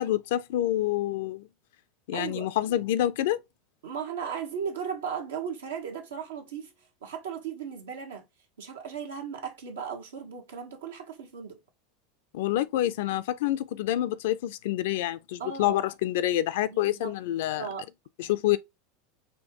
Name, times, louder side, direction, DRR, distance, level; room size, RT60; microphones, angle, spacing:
voice 1, 0.0-1.5 2.1-3.4 12.3-17.7 18.2-18.6, left 13 dB, 70° left, 0.4 m, -27 dB
voice 2, 2.1-2.5 3.8-6.7 7.0-8.2 8.6-11.6 15.4-15.8 16.7-17.1 17.6-17.9, right 7 dB, 80° right, 1.1 m, -36 dB
4.3 x 2.5 x 2.9 m
hypercardioid pair, 95°, 0 cm